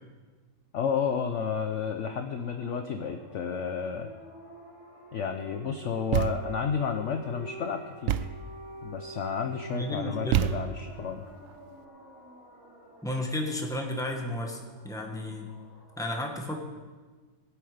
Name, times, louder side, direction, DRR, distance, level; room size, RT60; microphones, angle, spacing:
voice 1, 0.7-4.1 5.1-8.3 8.8-11.2, left 6 dB, 60° left, 6 dB, 0.8 m, -31 dB
sound 1, 1.3-15.9, right 2 dB, 55° right, 3.8 m, -48 dB
Thump thud, 6.1-6.7 8.1-8.5 10.3-11.0, right 10 dB, 75° right, 0.7 m, -28 dB
voice 2, 9.7-10.4 13.0-15.5 16.0-16.6, left 1 dB, ahead, 1 dB, 1.3 m, -33 dB
18.5 x 8.3 x 5.0 m, 1.4 s
omnidirectional pair, 1.9 m